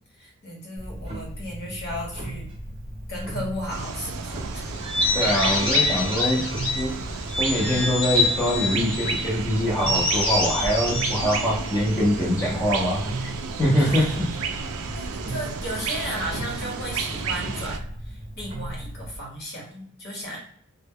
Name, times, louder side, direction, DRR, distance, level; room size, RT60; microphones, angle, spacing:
voice 1, 0.1-2.5 3.1-4.6 13.8-14.1 14.9-20.4, equal, 45° left, -2 dB, 1.0 m, -35 dB
Clock, 0.8-19.2, right 1 dB, 30° right, 0.6 m, -36 dB
sound 1, 3.7-17.8, right 5 dB, 75° right, 0.3 m, -33 dB
sound 2, 4.8-6.9 7.3-9.2 9.8-12.3, left 2 dB, 70° left, 1.1 m, -26 dB
voice 2, 5.1-6.4 6.8-6.9 7.4-13.3 13.6-14.1, equal, 15° left, -4 dB, 0.5 m, -23 dB
2.1 x 2.0 x 3.5 m, 0.63 s
head